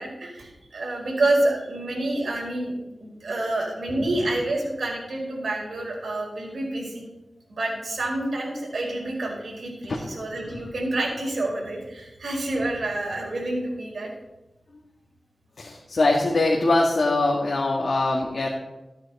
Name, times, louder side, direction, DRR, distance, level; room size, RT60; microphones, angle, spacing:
voice 1, 0.0-7.1 7.5-14.1, right 2 dB, 75° right, -3 dB, 5.0 m, -28 dB
voice 2, 15.6-18.5, left 2 dB, 65° left, -2 dB, 2.0 m, -22 dB
15.5 x 9.5 x 4.3 m, 0.99 s
wide cardioid pair, 75°, 0 cm